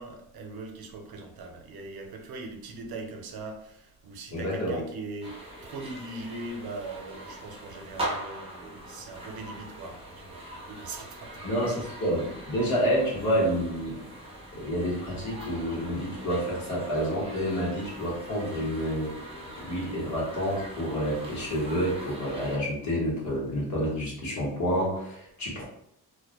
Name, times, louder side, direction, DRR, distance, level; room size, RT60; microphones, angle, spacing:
voice 1, 0.0-5.3 5.6-11.5 12.2-12.3, right 3 dB, 75° right, 4 dB, 0.6 m, -40 dB
voice 2, 4.3-4.8 11.4-14.0 14.5-19.1 19.6-25.6, equal, 50° left, -5 dB, 1.0 m, -29 dB
sound 1, 5.2-22.6, right 1 dB, 15° right, 0.4 m, -41 dB
2.2 x 2.0 x 2.8 m, 0.77 s
wide cardioid pair, 165°, 37 cm